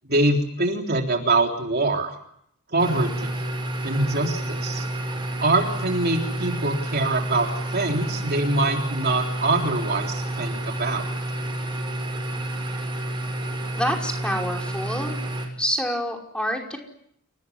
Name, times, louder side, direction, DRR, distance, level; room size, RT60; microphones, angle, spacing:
voice 1, 0.0-2.1 2.7-3.4 3.8-4.9 5.4-11.0, right 2 dB, 50° right, 2 dB, 3.7 m, -24 dB
sound 1, 2.8-15.5, right 1 dB, 25° right, 6.6 m, -30 dB
voice 2, 13.8-15.1 15.6-16.8, equal, 5° left, 1 dB, 5.5 m, -27 dB
29.0 x 19.0 x 9.6 m, 0.71 s
head